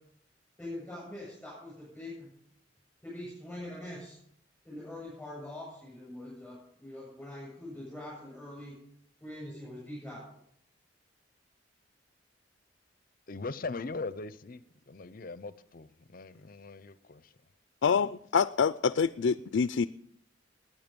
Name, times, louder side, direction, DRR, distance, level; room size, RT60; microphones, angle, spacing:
voice 1, 0.6-2.3 3.0-4.2 4.6-8.7 9.2-10.4, left 1 dB, 5° left, 7.6 m, -43 dB
voice 2, 13.3-17.4, left 3 dB, 50° left, 0.7 m, -40 dB
voice 3, 17.8-19.9, left 6 dB, 90° left, 0.4 m, -26 dB
19.5 x 9.3 x 5.3 m
head